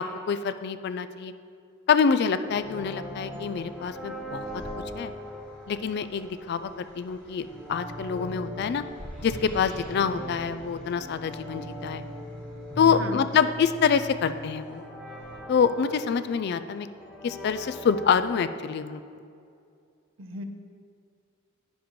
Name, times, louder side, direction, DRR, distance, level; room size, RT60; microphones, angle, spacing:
voice 1, 0.0-1.3 1.9-4.4 4.9-5.1 5.7-8.8 9.2-12.0 12.8-14.8 15.5-16.9 17.2-19.0, left 6 dB, 55° left, 12 dB, 0.3 m, -26 dB
sound 1, 2.4-18.4, equal, 5° left, 1.1 m, -40 dB
voice 2, 12.8-13.3 20.2-20.4, equal, 80° right, 5 dB, 0.7 m, -37 dB
10.0 x 7.2 x 3.1 m, 2.4 s
head